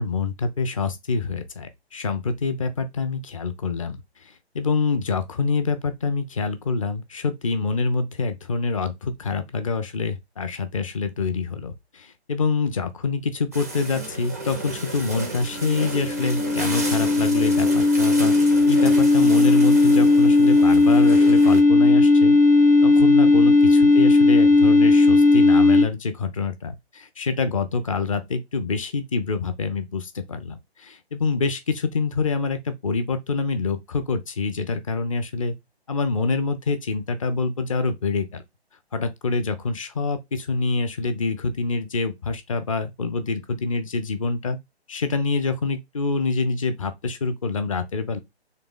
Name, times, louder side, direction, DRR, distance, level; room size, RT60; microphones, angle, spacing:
voice 1, 0.0-4.0 4.5-18.3 18.7-22.4 22.8-35.5 35.9-38.4 38.9-44.6 44.9-48.2, left 4 dB, 30° left, 0.6 m, -26 dB
sound 1, 13.5-21.6, right 2 dB, 15° right, 0.3 m, -33 dB
sound 2, 15.6-25.9, left 3 dB, 60° left, 0.9 m, -16 dB
3.8 x 3.0 x 3.6 m
figure-of-eight pair, 145°, 32 cm